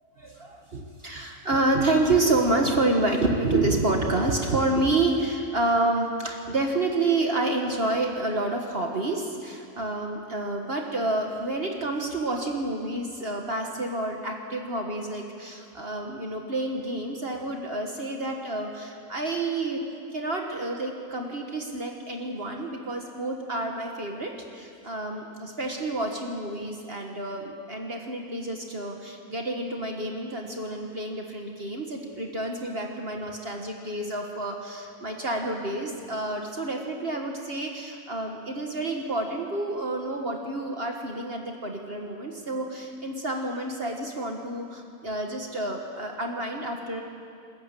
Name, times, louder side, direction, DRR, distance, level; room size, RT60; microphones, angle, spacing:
voice 1, 0.2-19.8 20.1-47.0, right 2 dB, 40° right, 2 dB, 1.7 m, -29 dB
21.0 x 14.0 x 9.0 m, 2.4 s
omnidirectional pair, 1.6 m